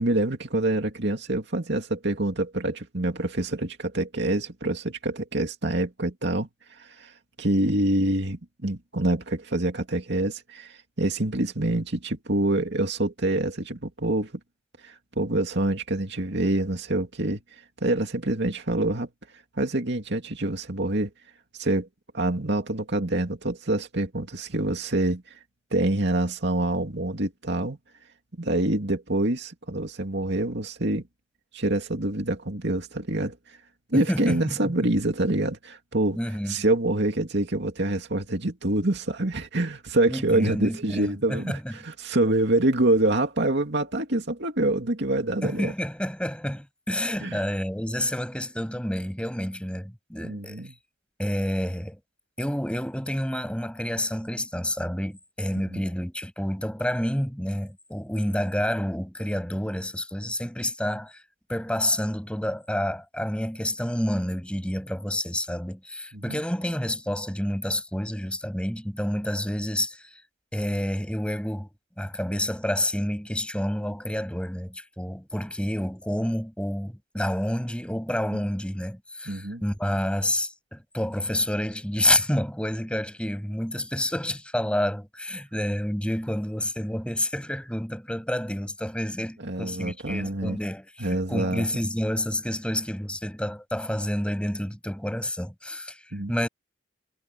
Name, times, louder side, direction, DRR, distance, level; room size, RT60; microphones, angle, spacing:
voice 1, 0.0-14.3 14.8-17.4 17.8-19.1 19.5-21.1 21.5-21.9 22.1-25.4 25.7-27.8 28.4-31.1 31.5-33.6 33.9-36.2 36.5-45.7 47.2-47.4 50.2-50.7 55.7-55.8 66.1-66.4 78.3-78.4 79.3-79.6 89.4-90.6 91.0-91.7 96.1-96.3, right 2 dB, 60° right, 2.6 m, -26 dB
voice 2, 33.9-34.7 36.2-36.5 40.1-41.7 45.4-50.6 51.2-52.0 52.4-61.2 61.5-70.1 70.5-71.7 72.0-96.0 96.3-96.5, left 1 dB, 5° left, 6.9 m, -29 dB
head